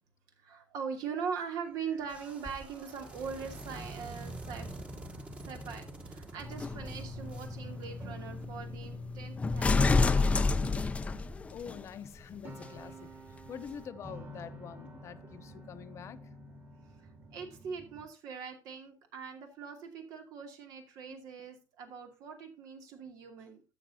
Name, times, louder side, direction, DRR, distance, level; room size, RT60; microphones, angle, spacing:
voice 1, 0.4-4.7 5.5-10.3 17.0-23.6, right 6 dB, 75° right, 2.6 m, -41 dB
sound 1, 1.6-18.1, right 2 dB, 35° right, 2.6 m, -50 dB
sound 2, 2.0-8.4, right 2 dB, 20° right, 1.4 m, -48 dB
sound 3, 6.4-11.8 12.6-12.7, left 3 dB, 20° left, 0.5 m, -30 dB
voice 2, 11.5-13.2 13.5-16.2, left 8 dB, 45° left, 0.8 m, -45 dB
13.0 x 7.8 x 2.8 m
cardioid pair, 130°, 7 cm